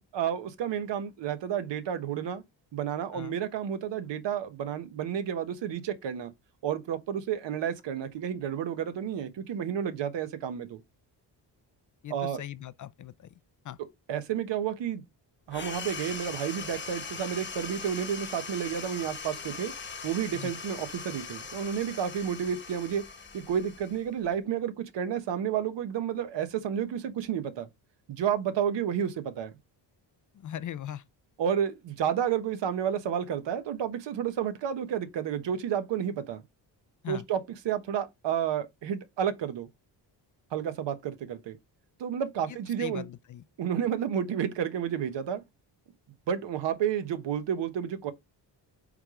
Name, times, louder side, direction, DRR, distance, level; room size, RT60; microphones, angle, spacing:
voice 1, 0.1-2.4 2.7-6.3 6.6-10.8 12.1-12.4 14.1-15.0 15.5-19.7 20.0-23.0 23.3-27.7 28.1-29.5 31.4-36.4 37.1-39.7 40.5-41.6 42.0-43.0 43.6-45.4 46.3-48.1, right 9 dB, 75° right, 1.2 m, -31 dB
voice 2, 12.0-13.3 13.6-13.8 20.3-20.5 30.3-31.0 37.0-37.2 42.5-43.4, left 10 dB, 45° left, 0.5 m, -40 dB
sound 1, 15.5-24.4, left 5 dB, 25° left, 1.0 m, -40 dB
8.8 x 3.4 x 3.7 m
cardioid pair, 140°, 44 cm